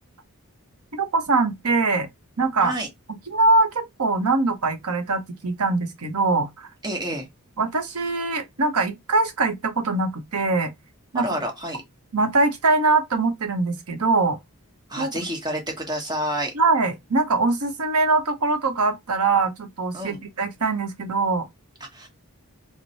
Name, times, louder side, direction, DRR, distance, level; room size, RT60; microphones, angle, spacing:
voice 1, 0.9-2.1 2.4-2.7 3.1-6.7 7.6-10.7 11.1-11.3 12.1-14.4 15.0-15.1 16.5-21.5, right 3 dB, 85° right, 0.8 m, -22 dB
voice 2, 6.8-7.3 11.1-11.8 14.9-16.5 19.9-20.2 21.9-22.1, right 1 dB, 20° right, 1.1 m, -29 dB
3.1 x 2.1 x 3.9 m
head